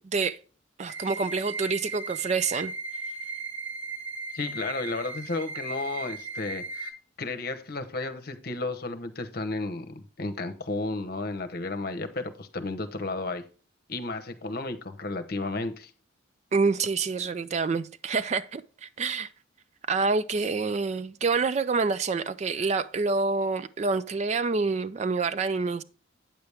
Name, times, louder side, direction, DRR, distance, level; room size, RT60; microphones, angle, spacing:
voice 1, 0.8-2.7 16.5-19.3 19.9-25.8, right 4 dB, 35° right, 0.3 m, -27 dB
sound 1, 0.9-6.9, right 3 dB, 80° right, 1.9 m, -37 dB
voice 2, 4.3-6.9 7.2-13.4 13.9-15.9, left 2 dB, 50° left, 0.9 m, -33 dB
8.9 x 6.9 x 3.4 m
head